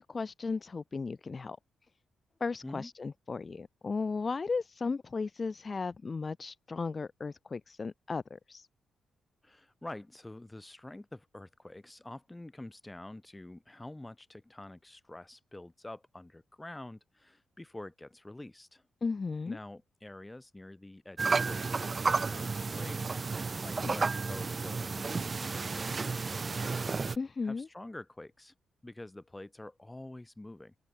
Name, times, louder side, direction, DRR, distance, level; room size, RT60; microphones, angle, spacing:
voice 1, 0.0-1.6 2.4-8.7 19.0-19.6 23.8-23.9 27.2-27.7, left 4 dB, 35° left, 0.7 m, -35 dB
voice 2, 9.4-18.8 19.5-26.9 27.4-28.5 28.8-30.7, left 1 dB, 10° left, 1.4 m, -47 dB
sound 1, 21.2-27.2, right 4 dB, 35° right, 0.3 m, -32 dB
cardioid pair, 100°, 0 cm